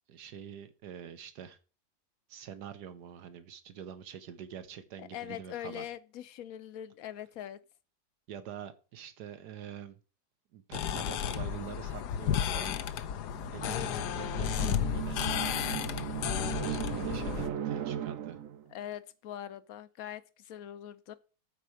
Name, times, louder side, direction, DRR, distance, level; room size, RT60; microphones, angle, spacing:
voice 1, 0.1-1.6 2.3-5.8 8.3-10.0 10.5-12.8 13.5-15.2 16.7-18.4, right 9 dB, 80° right, 1.5 m, -45 dB
voice 2, 5.0-7.6 13.6-14.8 18.7-21.1, left 11 dB, 65° left, 1.1 m, -43 dB
sound 1, 10.7-17.5, left 9 dB, 90° left, 1.3 m, -33 dB
sound 2, 13.2-18.7, right 10 dB, 60° right, 1.1 m, -37 dB
8.4 x 4.6 x 6.3 m
omnidirectional pair, 1.7 m